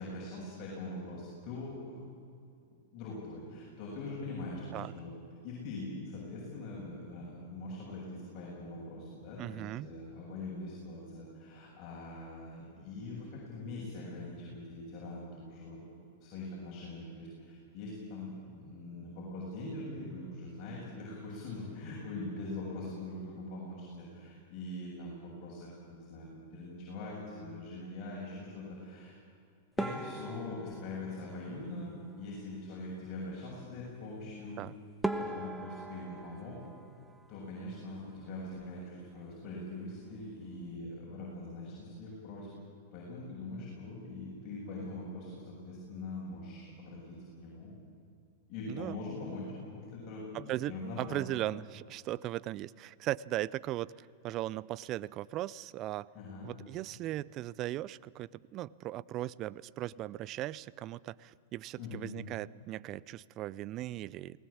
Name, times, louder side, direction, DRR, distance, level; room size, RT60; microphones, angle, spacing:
voice 1, 0.0-2.0 2.9-5.1 5.4-15.8 16.2-29.1 29.8-34.6 35.2-36.6 37.3-42.5 42.9-47.7 48.5-49.5 49.7-51.4 56.1-56.5 61.8-62.1, left 2 dB, 45° left, -6 dB, 7.5 m, -42 dB
voice 2, 9.4-9.9 34.6-34.7 48.7-49.0 50.3-50.7 51.0-56.1 56.4-64.4, right 14 dB, 40° right, 21 dB, 0.5 m, -38 dB
sound 1, 29.8-32.2 34.5-34.6 35.0-37.8 38.1-38.8 39.1-39.3 39.6-39.7 40.4-40.7, right 2 dB, 5° right, 1.4 m, -40 dB
20.0 x 19.0 x 8.7 m, 2.5 s
hypercardioid pair, 115°, 0 cm